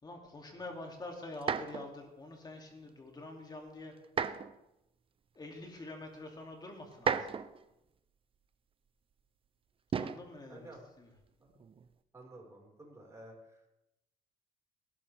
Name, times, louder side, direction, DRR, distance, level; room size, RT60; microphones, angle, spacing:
voice 1, 0.0-3.9 5.3-7.3 9.9-10.7 11.0-11.1, left 2 dB, 25° left, 1 dB, 2.8 m, -46 dB
sound 1, 1.3-1.9 4.0-4.6 5.6-5.7 6.9-7.6 9.9-10.3 11.5-11.9, right 6 dB, 35° right, 0.7 m, -34 dB
voice 2, 10.5-10.9 11.4-11.5 12.1-13.7, right 1 dB, 20° right, -1 dB, 5.0 m, -52 dB
19.5 x 12.0 x 3.5 m, 0.91 s
cardioid pair, 110°, 17 cm